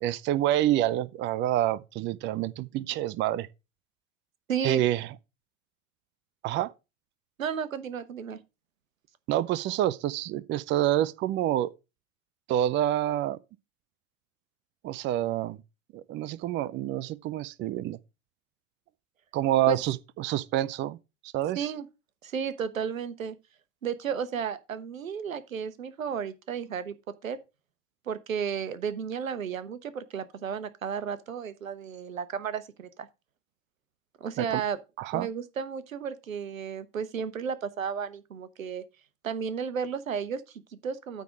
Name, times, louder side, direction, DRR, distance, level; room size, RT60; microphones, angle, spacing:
voice 1, 0.0-3.5 4.6-5.1 6.4-6.7 9.3-11.7 12.5-13.4 14.8-15.6 15.9-18.0 19.3-21.0 21.3-21.7 34.4-34.6 35.0-35.3, right 13 dB, 30° right, 0.5 m, -27 dB
voice 2, 4.5-4.8 7.4-8.4 19.7-19.8 21.6-21.8 22.2-23.3 23.8-26.9 27.2-27.4 28.1-33.1 34.2-34.8 35.1-38.8 39.2-41.2, right 7 dB, 90° right, 1.0 m, -33 dB
9.2 x 3.8 x 6.1 m
hypercardioid pair, 90°, 39 cm